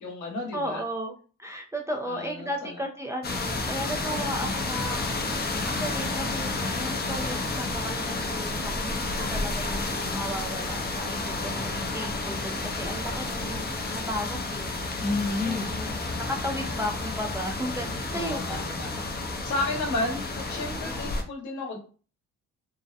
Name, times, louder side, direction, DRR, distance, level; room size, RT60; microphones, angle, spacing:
voice 1, 0.0-0.8 2.1-2.7 15.0-15.7 18.1-19.1 19.4-21.8, left 2 dB, 70° left, 0 dB, 1.0 m, -32 dB
voice 2, 0.5-1.1 1.4-5.3 5.7-14.7 15.4-18.7 20.7-21.1, equal, 10° right, 1 dB, 0.4 m, -35 dB
sound 1, 3.2-21.2, left 3 dB, 35° left, 0.6 m, -31 dB
2.6 x 2.1 x 2.4 m, 0.37 s
cardioid pair, 90°, 30 cm